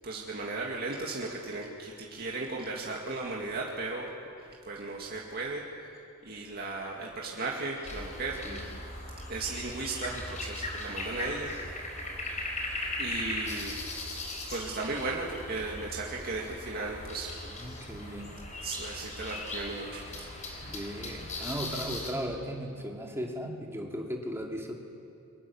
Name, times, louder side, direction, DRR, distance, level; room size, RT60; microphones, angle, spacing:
voice 1, 0.0-4.1 4.7-5.6 6.2-8.5 9.3-11.5 13.0-13.8 14.5-17.3 18.6-20.3, right 3 dB, 45° right, -2 dB, 2.2 m, -36 dB
sound 1, 7.8-22.1, left 2 dB, 35° left, 4.3 m, -38 dB
voice 2, 17.4-18.3 20.6-24.8, equal, 10° right, 0 dB, 2.6 m, -37 dB
28.5 x 24.0 x 7.2 m, 2.6 s
head